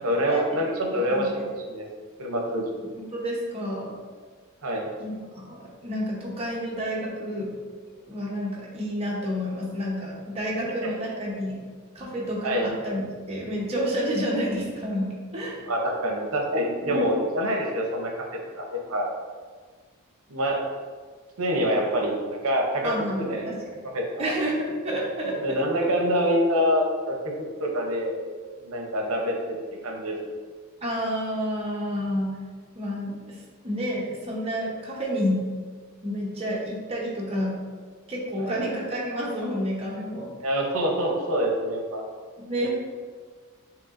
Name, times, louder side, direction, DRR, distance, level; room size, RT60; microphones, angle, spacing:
voice 1, 0.0-1.8 2.2-2.9 4.6-4.9 10.8-10.9 12.4-12.7 15.7-19.1 20.3-20.6 21.4-22.1 22.4-24.3 25.4-28.2 28.6-29.6 29.8-30.2 38.4-38.6 40.4-42.0 42.5-42.6, equal, 65° right, 0 dB, 0.8 m, -26 dB
voice 2, 1.1-1.5 2.9-4.0 5.0-7.5 8.1-11.6 11.9-15.6 16.8-17.1 22.8-23.6 24.2-25.6 30.8-32.4 32.7-35.4 36.0-37.6 38.1-40.3 42.4-42.7, equal, 25° right, -4 dB, 0.9 m, -30 dB
6.7 x 2.8 x 2.5 m, 1.5 s
head